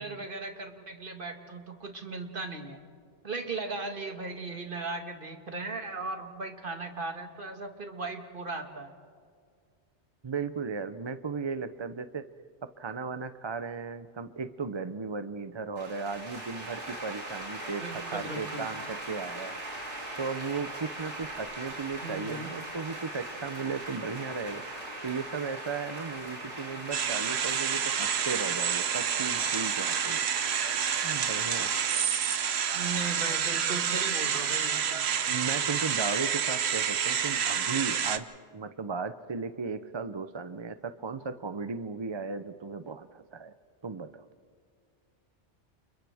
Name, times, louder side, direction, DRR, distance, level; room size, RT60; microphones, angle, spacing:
voice 1, 0.0-2.8 3.2-8.9 17.8-18.7 22.0-22.5 32.7-35.1, right 3 dB, 50° right, 4 dB, 1.9 m, -37 dB
voice 2, 10.2-12.2 12.6-19.6 20.2-30.2 31.0-31.7 35.3-38.3 38.5-43.5 43.8-44.2, right 5 dB, 35° right, 11 dB, 0.5 m, -36 dB
sound 1, 15.8-32.0, right 1 dB, 85° right, 3.9 m, -40 dB
sound 2, 26.9-38.2, right 8 dB, 70° right, 1.1 m, -29 dB
29.5 x 29.5 x 3.5 m, 2.1 s
omnidirectional pair, 1.2 m